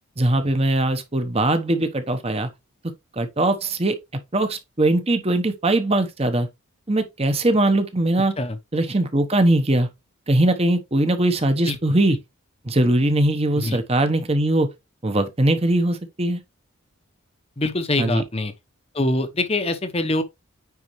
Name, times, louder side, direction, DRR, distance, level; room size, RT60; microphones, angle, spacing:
voice 1, 0.2-2.5 3.1-4.0 4.3-6.5 6.9-8.3 8.7-9.9 10.3-12.2 12.6-14.7 15.0-16.4 18.0-18.2, right 1 dB, 30° right, 1.0 m, -21 dB
voice 2, 17.6-18.5 18.9-20.2, left 2 dB, 25° left, 0.9 m, -24 dB
9.5 x 4.3 x 3.1 m
head